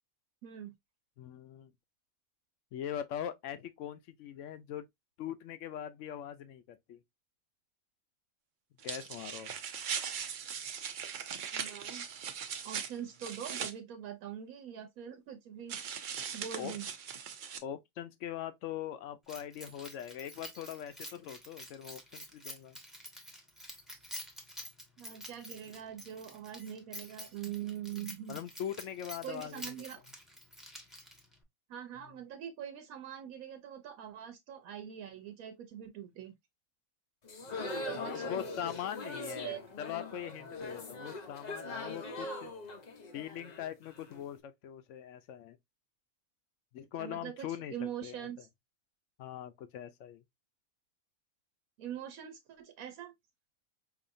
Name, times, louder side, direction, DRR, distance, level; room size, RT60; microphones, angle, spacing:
voice 1, 0.4-0.7 11.5-12.1 12.6-15.8 16.3-16.8 25.0-28.4 29.2-30.0 31.7-36.3 37.8-38.3 39.4-39.6 47.0-48.4 51.8-53.1, right 10 dB, 85° right, 1.1 m, -43 dB
voice 2, 1.2-1.7 2.7-4.9 5.2-7.0 8.8-9.6 16.5-16.7 17.6-22.8 28.3-29.7 32.0-32.1 38.0-42.5 43.1-45.6 46.7-48.3 49.2-50.2, left 10 dB, 65° left, 0.9 m, -42 dB
sound 1, 8.8-13.7 15.7-17.6, right 7 dB, 65° right, 0.4 m, -39 dB
Keys jangling, 19.3-31.4, equal, ahead, 0.7 m, -48 dB
sound 2, 37.2-44.2, left 2 dB, 45° left, 0.5 m, -41 dB
4.9 x 2.6 x 2.5 m
omnidirectional pair, 1.5 m